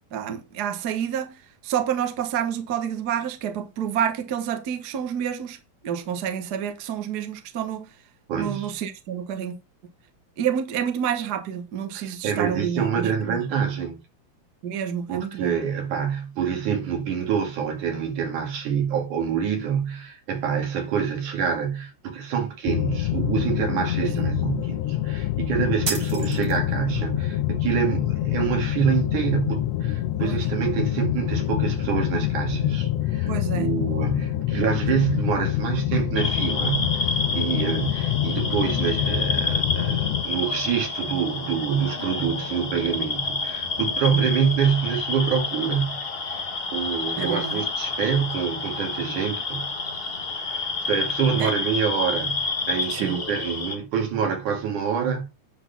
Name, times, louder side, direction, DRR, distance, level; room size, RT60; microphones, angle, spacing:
voice 1, 0.1-1.4 1.6-5.6 5.8-7.9 8.3-9.6 10.4-13.4 14.6-15.6 24.0-24.2 30.2-30.4 33.3-33.7 44.1-44.3 47.2-47.6 51.4-51.5 52.9-53.2, right 8 dB, 60° right, 1.0 m, -28 dB
voice 2, 8.3-8.7 11.9-14.0 15.1-37.0 37.4-46.4 46.7-49.7 50.3-55.3, right 7 dB, 80° right, 3.6 m, -26 dB
sound 1, 22.7-40.2, left 13 dB, 80° left, 1.6 m, -26 dB
sound 2, 25.8-26.9, right 5 dB, 40° right, 1.5 m, -31 dB
sound 3, 36.1-53.7, left 4 dB, 55° left, 0.6 m, -29 dB
9.7 x 4.1 x 5.8 m
omnidirectional pair, 3.5 m